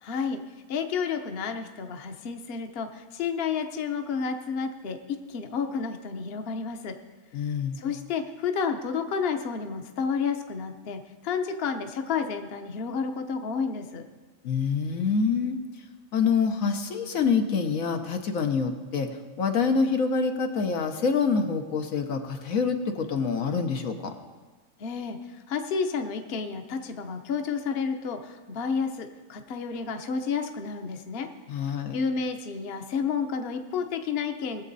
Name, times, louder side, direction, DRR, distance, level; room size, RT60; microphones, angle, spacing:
voice 1, 0.0-0.4 0.7-7.0 7.8-14.0 24.8-31.3 31.5-34.6, left 5 dB, 50° left, 6 dB, 1.0 m, -31 dB
voice 2, 7.3-7.8 14.4-15.6 16.1-19.1 19.4-24.1 31.5-32.0, left 5 dB, 85° left, 5 dB, 1.5 m, -26 dB
20.0 x 7.5 x 4.0 m, 1.4 s
omnidirectional pair, 1.4 m